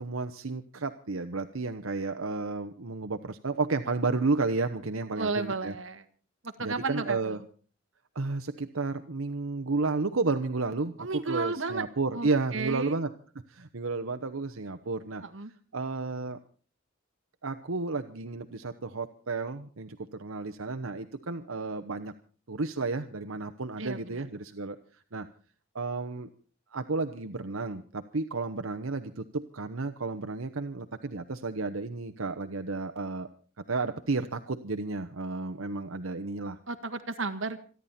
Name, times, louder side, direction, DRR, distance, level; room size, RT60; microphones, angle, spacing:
voice 1, 0.0-5.7 6.6-7.4 8.1-13.1 13.5-15.2 15.7-16.4 17.4-22.1 22.5-24.8 25.1-25.3 25.7-26.3 26.7-33.3 33.7-36.6, right 3 dB, 90° right, 8 dB, 1.0 m, -32 dB
voice 2, 5.2-6.0 6.4-7.4 11.0-11.9 12.1-13.0 15.2-15.5 23.8-24.2 36.7-37.6, right 3 dB, 70° right, 7 dB, 1.9 m, -33 dB
27.5 x 11.0 x 4.3 m, 0.40 s
head